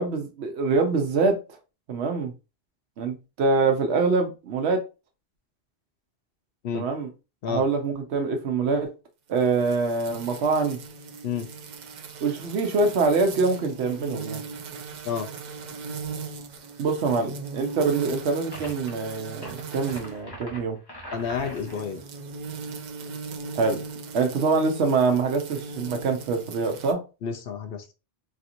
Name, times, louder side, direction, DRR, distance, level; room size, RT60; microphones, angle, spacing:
voice 1, 0.0-1.4 1.9-2.3 3.0-4.8 6.7-7.1 7.5-8.9 9.3-10.8 12.2-14.4 16.8-20.8 23.5-23.8 24.1-27.0, right 4 dB, 80° right, 1.0 m, -24 dB
sound 1, 9.4-20.2 21.3-26.9, right 4 dB, 55° right, 0.5 m, -38 dB
sound 2, 18.5-18.9 19.3-21.9, equal, 25° left, 1.0 m, -41 dB
voice 2, 21.1-22.0 27.2-27.8, left 6 dB, 65° left, 0.7 m, -30 dB
3.2 x 2.8 x 2.5 m
omnidirectional pair, 1.1 m